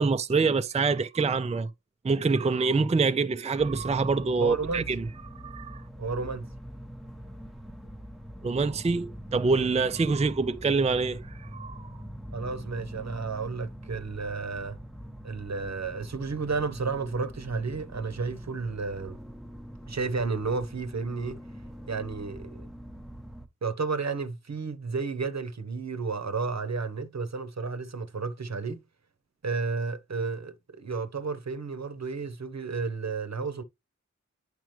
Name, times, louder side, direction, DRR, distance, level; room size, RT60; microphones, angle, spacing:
voice 1, 0.0-1.7 2.0-5.0 5.4-5.8 8.4-11.9, right 4 dB, 25° right, 0.4 m, -26 dB
sound 1, 3.6-23.5, equal, ahead, 0.9 m, -43 dB
voice 2, 4.4-4.9 6.0-6.5 12.3-14.8 15.2-19.2 19.9-21.4 21.9-22.7 23.6-28.8 29.4-33.6, right 4 dB, 65° right, 0.8 m, -32 dB
9.2 x 4.8 x 3.1 m
wide cardioid pair, 45°, 29 cm